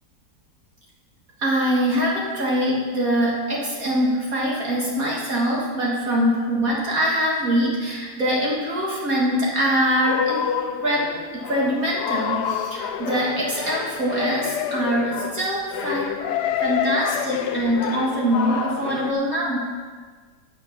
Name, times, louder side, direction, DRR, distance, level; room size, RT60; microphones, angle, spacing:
voice 1, 1.4-10.5 10.8-16.1 16.6-19.7, equal, 60° right, -4 dB, 2.2 m, -23 dB
sound 1, 10.0-19.1, left 8 dB, 80° left, 1.2 m, -28 dB
9.7 x 7.8 x 5.8 m, 1.5 s
omnidirectional pair, 1.8 m